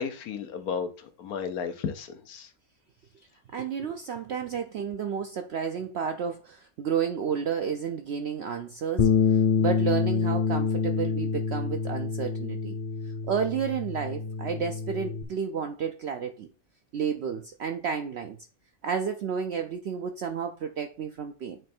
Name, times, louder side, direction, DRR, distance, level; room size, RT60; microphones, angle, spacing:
voice 1, 0.0-2.5, left 6 dB, 85° left, 1.3 m, -33 dB
voice 2, 3.5-12.8 13.3-16.5 16.9-18.4 18.8-21.6, right 7 dB, 65° right, 0.6 m, -31 dB
Bass guitar, 9.0-15.2, left 6 dB, 35° left, 0.7 m, -27 dB
7.8 x 3.2 x 4.3 m
omnidirectional pair, 1.5 m